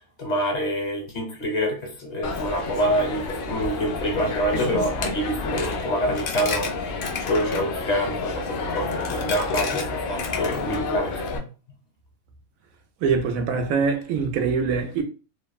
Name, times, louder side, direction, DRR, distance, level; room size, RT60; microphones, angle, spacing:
voice 1, 0.2-7.0 7.3-11.4, equal, 35° left, 0.7 m, -26 dB
Coin (dropping), 2.2-11.4, left 4 dB, 75° left, 0.5 m, -29 dB
voice 2, 13.0-15.0, right 5 dB, 75° right, 1.0 m, -23 dB
2.9 x 2.1 x 2.2 m
omnidirectional pair, 1.5 m